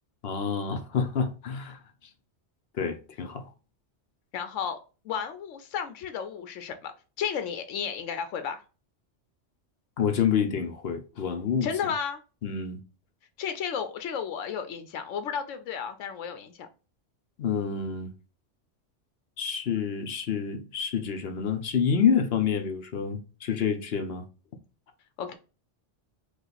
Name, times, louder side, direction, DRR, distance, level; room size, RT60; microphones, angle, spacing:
voice 1, 0.2-1.8 2.7-3.5 10.0-11.9 12.4-12.8 17.4-18.1 19.4-24.2, left 7 dB, 60° left, 0.9 m, -28 dB
voice 2, 4.3-4.8 5.0-6.9 7.2-8.6 11.6-12.2 13.4-16.7 25.2-25.3, left 7 dB, 90° left, 1.0 m, -33 dB
4.9 x 2.4 x 3.9 m
omnidirectional pair, 1.2 m